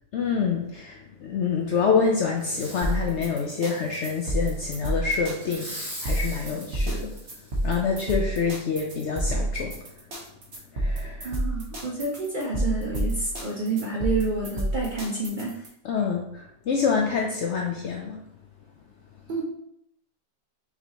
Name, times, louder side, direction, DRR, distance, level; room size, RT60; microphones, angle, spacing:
voice 1, 0.1-7.1 7.6-9.7 10.7-11.3 15.8-18.2, left 5 dB, 85° left, 0 dB, 0.6 m, -26 dB
Fireworks, 2.4-3.0 3.5-4.6 5.4-7.8 8.3-8.4, equal, 5° right, 1.4 m, -42 dB
sound 1, 2.8-15.7, right 1 dB, 45° right, 1.2 m, -29 dB
voice 2, 11.2-15.6 19.3-19.4, right 3 dB, 80° right, -3 dB, 0.4 m, -29 dB
6.0 x 2.8 x 2.8 m, 0.76 s
omnidirectional pair, 1.8 m